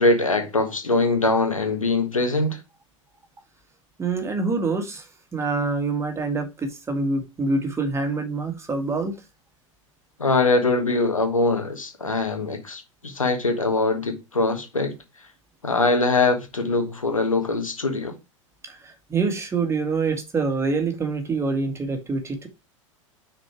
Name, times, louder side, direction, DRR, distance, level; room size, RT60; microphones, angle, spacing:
voice 1, 0.0-2.6 10.2-14.9 15.6-18.1, left 2 dB, 85° left, 1.6 m, -22 dB
voice 2, 4.0-5.1 5.3-9.1 18.6-22.5, right 3 dB, 15° right, 1.8 m, -26 dB
6.2 x 4.4 x 4.6 m
figure-of-eight pair, 90°, 17 cm